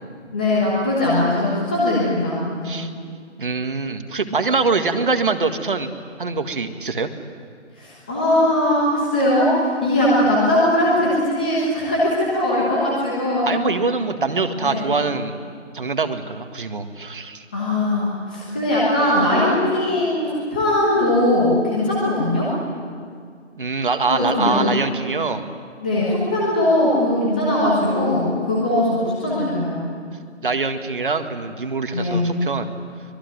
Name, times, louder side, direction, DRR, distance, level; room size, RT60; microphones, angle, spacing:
voice 1, 0.3-2.8 7.8-13.5 14.6-14.8 17.5-22.5 24.1-24.7 25.8-29.8 31.9-32.2, left 1 dB, 5° left, -6 dB, 1.2 m, -20 dB
voice 2, 3.4-5.9 6.2-7.1 13.4-15.3 15.7-17.5 23.6-25.4 30.4-32.7, right 4 dB, 45° right, 7 dB, 1.9 m, -23 dB
25.5 x 21.5 x 9.5 m, 2.2 s
hypercardioid pair, 175°, 37 cm